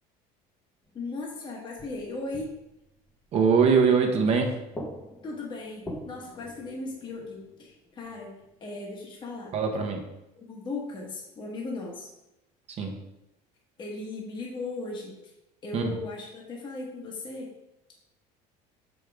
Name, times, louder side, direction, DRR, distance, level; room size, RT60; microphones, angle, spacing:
sound 1, 0.8-1.3 1.8-3.9 4.1-8.5 8.9-9.0, equal, 15° left, 0.9 m, -44 dB
voice 1, 0.9-2.5 5.2-8.3 8.6-9.5 10.3-12.1 13.8-15.3 15.6-17.5, left 3 dB, 30° left, -1 dB, 1.2 m, -37 dB
voice 2, 3.3-4.5 9.5-10.0 12.8-12.9 15.7-15.9, right 5 dB, 40° right, 3 dB, 1.0 m, -22 dB
6.4 x 5.2 x 3.5 m, 0.89 s
cardioid pair, 150°, 17 cm